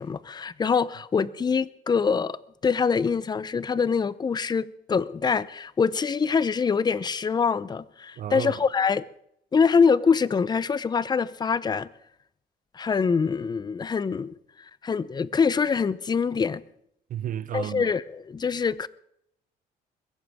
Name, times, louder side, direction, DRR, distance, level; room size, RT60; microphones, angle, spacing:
voice 1, 0.0-2.4 2.6-9.0 9.5-11.9 12.7-14.3 14.8-16.6 17.5-18.9, left 5 dB, 25° left, 0.7 m, -24 dB
voice 2, 8.2-8.6 17.1-17.9, right 11 dB, 50° right, 0.7 m, -32 dB
22.0 x 16.0 x 3.6 m
cardioid pair, 110°, 17 cm